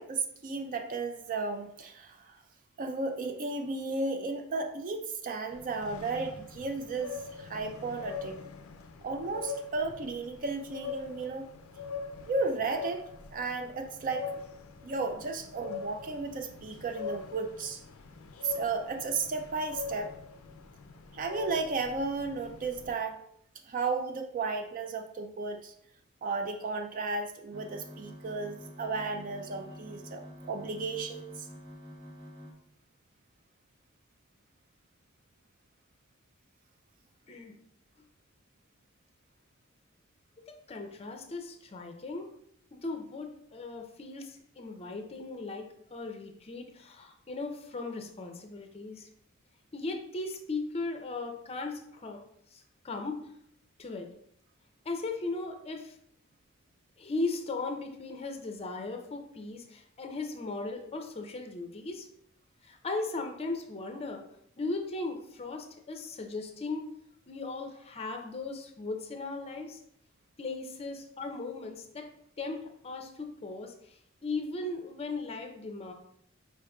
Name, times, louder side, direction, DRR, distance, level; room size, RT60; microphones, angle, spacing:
voice 1, 0.0-2.4 2.8-8.4 9.0-11.5 12.3-13.0 13.3-14.3 14.8-17.8 18.4-20.1 21.1-23.2 23.7-25.7 26.2-31.5, right 3 dB, 40° right, 6 dB, 0.4 m, -34 dB
sound 1, 5.5-22.9, left 5 dB, 85° left, 0.4 m, -43 dB
sound 2, 27.5-32.5, equal, 85° right, 1.1 m, -48 dB
voice 2, 40.5-42.3 42.7-49.1 49.7-52.2 52.5-53.2 53.8-54.1 54.8-56.0 57.0-62.1 62.6-64.2 64.6-66.9 67.3-69.8 70.4-72.1 72.4-75.9, left 3 dB, 30° left, 4 dB, 0.5 m, -37 dB
4.9 x 4.6 x 2.3 m, 0.69 s
head